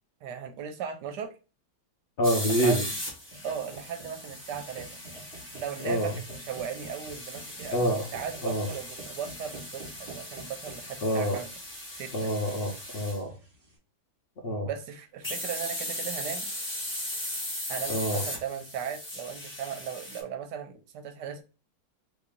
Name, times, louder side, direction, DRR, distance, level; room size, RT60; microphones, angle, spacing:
voice 1, 0.2-1.3 2.4-2.8 3.4-5.0 5.5-11.5 12.0-12.3 14.6-16.5 17.7-21.4, right 8 dB, 75° right, 1.1 m, -37 dB
voice 2, 2.2-2.8 5.8-6.2 7.7-8.1 8.4-8.7 11.0-11.4 12.1-13.3 14.4-14.7 17.9-18.2, equal, 70° left, 0.5 m, -27 dB
sound 1, 2.2-13.2 15.2-20.2, left 1 dB, 10° left, 0.6 m, -38 dB
sound 2, 3.3-13.7, right 2 dB, 35° right, 1.0 m, -49 dB
3.1 x 2.7 x 3.6 m
omnidirectional pair, 2.0 m